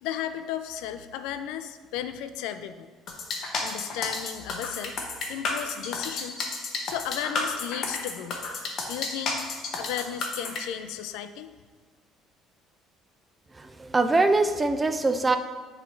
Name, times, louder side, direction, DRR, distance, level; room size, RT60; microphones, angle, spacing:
voice 1, 0.0-2.9 3.6-5.0 5.3-6.5 6.8-8.5 8.9-9.4 9.8-11.5, left 10 dB, 85° left, 10 dB, 0.4 m, -34 dB
sound 1, 3.1-10.6, left 3 dB, 45° left, 0.9 m, -31 dB
voice 2, 13.6-15.4, right 3 dB, 15° right, 9 dB, 0.3 m, -23 dB
8.1 x 3.2 x 4.5 m, 1.5 s
cardioid pair, 155°, 0 cm